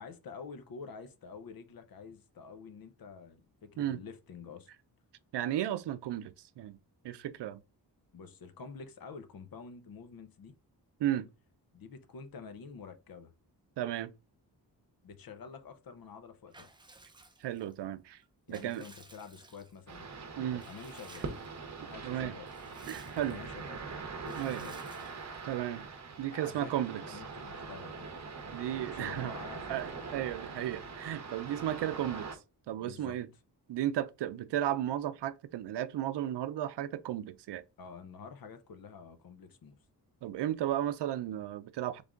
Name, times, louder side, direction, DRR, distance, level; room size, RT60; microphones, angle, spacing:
voice 1, 0.0-4.7 8.1-10.5 11.7-13.3 15.0-16.8 18.5-20.1 20.4-21.3 21.8-22.5 23.2-23.9 24.2-24.8 26.3-26.7 27.0-28.1 28.7-29.8 32.7-33.2 37.8-39.8, left 5 dB, 60° left, 0.7 m, -48 dB
voice 2, 5.3-6.8 7.0-7.6 11.0-11.3 13.8-14.1 17.4-18.2 18.5-18.8 20.4-20.6 22.0-22.3 22.9-23.4 24.4-24.6 25.4-25.8 26.2-27.0 28.5-29.3 29.7-32.3 32.7-33.3 33.7-37.6 40.2-42.0, right 12 dB, 80° right, 0.5 m, -34 dB
Water / Bathtub (filling or washing) / Liquid, 16.5-17.8 18.2-19.9 20.6-21.5 21.9-22.0 22.3-23.5 24.3-25.5, right 2 dB, 10° right, 0.5 m, -56 dB
sound 1, 19.9-32.4, right 4 dB, 40° right, 0.9 m, -43 dB
3.6 x 3.4 x 3.7 m
wide cardioid pair, 145°, 41 cm